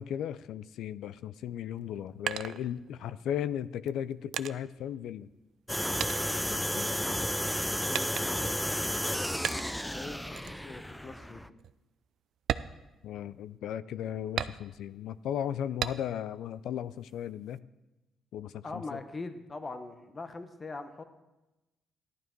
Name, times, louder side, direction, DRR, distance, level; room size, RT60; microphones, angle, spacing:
voice 1, 0.0-5.3 6.5-6.9 13.0-17.7 18.3-19.0, left 10 dB, 80° left, 16 dB, 0.4 m, -36 dB
sound 1, 1.7-3.2 3.9-5.7 6.0-7.2 7.9-8.6 9.4-9.9 10.4-10.6 11.1-11.2 11.6-11.8 12.4-13.6 14.4-15.0 15.8-16.3 16.7-17.6, right 9 dB, 70° right, 0.4 m, -37 dB
sound 2, 5.7-11.5, equal, 5° left, 0.5 m, -32 dB
voice 2, 7.8-8.9 9.9-11.5 18.6-21.0, left 3 dB, 30° left, 8 dB, 1.2 m, -42 dB
14.0 x 11.5 x 4.6 m, 1.0 s
cardioid pair, 90°, 0 cm